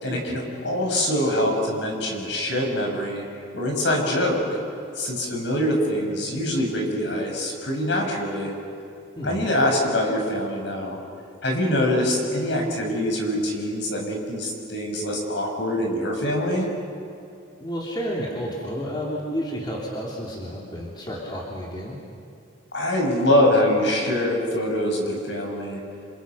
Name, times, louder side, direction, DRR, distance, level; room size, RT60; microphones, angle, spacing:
voice 1, 0.0-3.2 3.5-4.4 5.0-8.5 9.2-11.0 11.4-16.7 22.7-25.8, left 1 dB, 65° left, 1 dB, 5.7 m, -24 dB
voice 2, 9.2-9.5 17.6-21.9, equal, 20° left, -4 dB, 3.4 m, -31 dB
28.0 x 27.0 x 5.8 m, 2.6 s
head